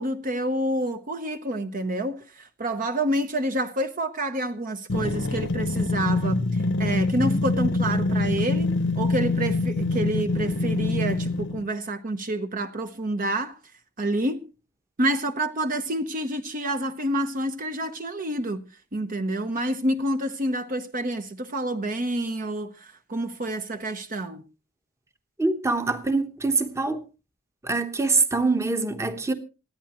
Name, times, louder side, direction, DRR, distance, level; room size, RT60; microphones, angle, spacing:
voice 1, 0.0-13.6 14.0-14.5 15.0-18.6 18.9-24.4, right 1 dB, 40° right, 0.9 m, -28 dB
sound 1, 4.9-11.6, left 2 dB, 60° left, 0.9 m, -25 dB
voice 2, 25.4-27.0 27.6-29.3, right 3 dB, 15° right, 1.1 m, -24 dB
27.0 x 9.5 x 3.0 m
head